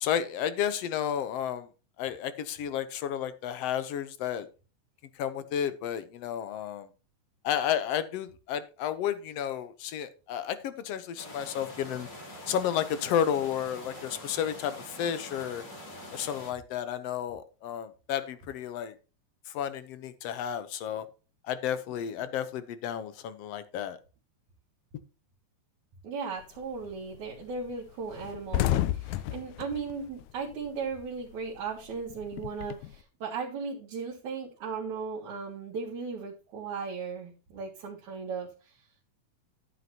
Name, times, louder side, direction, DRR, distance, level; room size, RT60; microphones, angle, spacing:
voice 1, 0.0-1.7 2.0-4.5 5.2-6.9 7.4-12.1 12.5-15.6 16.1-18.9 19.5-21.1 21.4-24.0, left 9 dB, 70° left, 1.8 m, -32 dB
sound 1, 11.2-16.5, left 1 dB, 35° left, 3.7 m, -45 dB
voice 2, 26.0-38.8, right 5 dB, 80° right, 3.1 m, -37 dB
sound 2, 26.4-26.8 27.1-27.3 27.6-27.7 28.0-31.0 31.3-33.0, left 14 dB, 85° left, 2.0 m, -31 dB
11.5 x 9.4 x 2.9 m
omnidirectional pair, 3.4 m